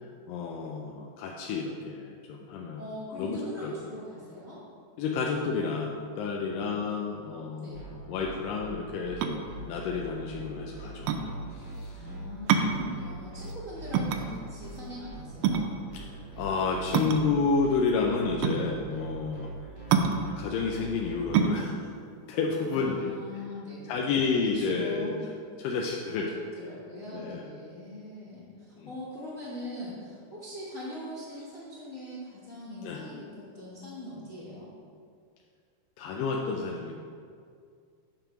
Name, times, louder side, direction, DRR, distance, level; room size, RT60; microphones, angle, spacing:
voice 1, 0.3-2.8 3.1-3.7 5.0-11.1 11.5-12.0 15.9-16.0 16.4-19.5 20.4-21.9 22.3-23.1 23.9-25.1 25.6-26.3 27.1-27.4 28.8-28.9 32.8-33.0 36.0-36.9, left 4 dB, 85° left, -1 dB, 2.2 m, -30 dB
voice 2, 2.7-4.6 6.5-6.7 7.6-7.8 11.9-15.7 22.6-25.2 26.2-34.7, left 1 dB, 70° left, -9 dB, 0.7 m, -41 dB
sound 1, 7.7-21.2, right 1 dB, 30° right, 0.5 m, -42 dB
sound 2, 9.0-23.4, right 6 dB, 85° right, 2.2 m, -29 dB
9.1 x 3.4 x 5.8 m, 2.2 s
omnidirectional pair, 3.9 m